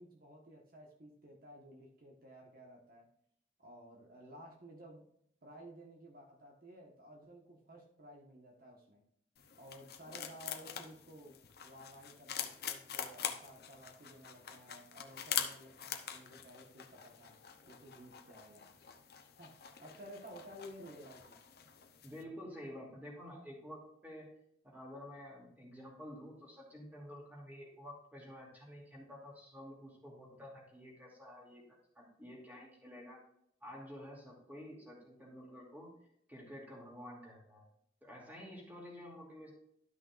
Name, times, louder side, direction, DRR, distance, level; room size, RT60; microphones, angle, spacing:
voice 1, 0.0-3.1 3.6-5.1 5.4-9.0 9.6-17.4 17.7-18.7 19.4-19.5 19.8-21.4, equal, 55° right, 0 dB, 1.4 m, -54 dB
sound 1, 9.4-22.2, left 9 dB, 60° left, 0.9 m, -44 dB
voice 2, 22.0-24.3 24.6-31.6 31.9-33.2 33.6-35.9 36.3-37.6 38.0-39.5, equal, 10° right, -3 dB, 2.7 m, -50 dB
12.5 x 6.2 x 2.5 m, 0.71 s
head